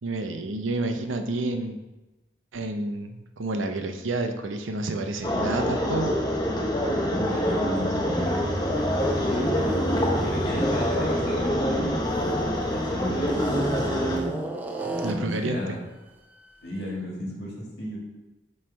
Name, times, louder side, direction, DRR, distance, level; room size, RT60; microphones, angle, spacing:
voice 1, 0.0-1.8 2.5-6.3 15.0-15.8, right 2 dB, 80° right, 6 dB, 0.6 m, -29 dB
sound 1, 5.2-14.2, equal, 20° left, 0.8 m, -26 dB
voice 2, 7.0-8.7 9.1-9.7 10.2-12.1 12.7-15.8 16.6-18.0, equal, 55° left, -3 dB, 1.8 m, -34 dB
sound 2, 7.8-12.6 13.2-15.4, right 1 dB, 10° right, 0.4 m, -33 dB
7.5 x 3.3 x 4.4 m, 1.1 s
head